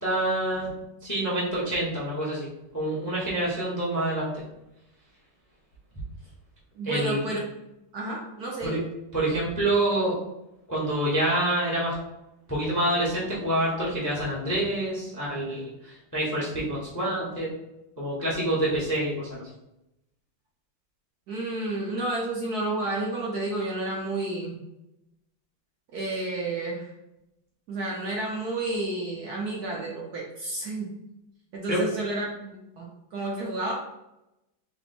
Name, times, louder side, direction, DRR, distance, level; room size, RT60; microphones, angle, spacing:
voice 1, 0.0-0.7 1.0-2.5 2.7-4.3 6.8-7.3 8.6-8.8 9.1-10.2 10.7-11.9 12.5-17.5 18.0-19.4 31.7-31.8, right 1 dB, 15° left, -6 dB, 0.6 m, -27 dB
voice 2, 6.7-7.4 7.9-8.8 21.3-24.6 25.9-26.9 27.7-30.9 31.5-33.7, right 2 dB, 65° right, -3 dB, 1.0 m, -31 dB
4.3 x 2.1 x 4.1 m, 0.89 s
omnidirectional pair, 2.2 m